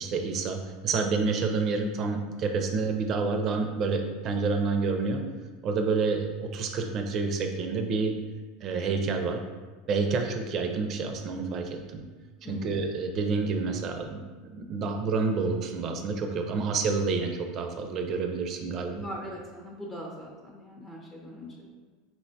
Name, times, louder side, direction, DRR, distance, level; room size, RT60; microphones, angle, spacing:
voice 1, 0.0-5.2 5.6-8.2 8.6-9.4 9.9-12.0 12.4-19.0, right 4 dB, 40° right, 4 dB, 0.4 m, -28 dB
voice 2, 18.9-21.7, equal, 15° left, -3 dB, 0.5 m, -41 dB
4.2 x 2.1 x 2.6 m, 1.3 s
supercardioid pair, 120°, 0 cm